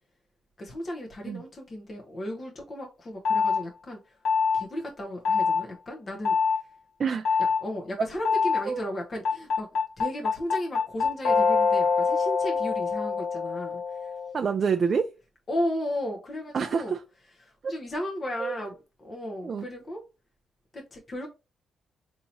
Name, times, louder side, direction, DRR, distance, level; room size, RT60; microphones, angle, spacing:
voice 1, 0.6-4.2 4.5-6.4 7.6-9.7 10.0-14.1 15.5-16.9 17.4-20.0 20.7-21.3, left 1 dB, 35° left, 0.8 m, -35 dB
sound 1, 3.3-3.6 4.3-4.6 5.3-5.6 6.3-6.6 7.3-7.6 8.3-8.6 9.3-14.3, left 5 dB, 80° left, 1.3 m, -24 dB
voice 2, 7.0-7.4 8.7-8.8 14.3-15.1 16.5-17.0 17.6-17.7 18.4-18.6 19.4-19.7, right 6 dB, 45° right, 0.4 m, -27 dB
4.1 x 2.8 x 2.8 m
cardioid pair, 105°, 0 cm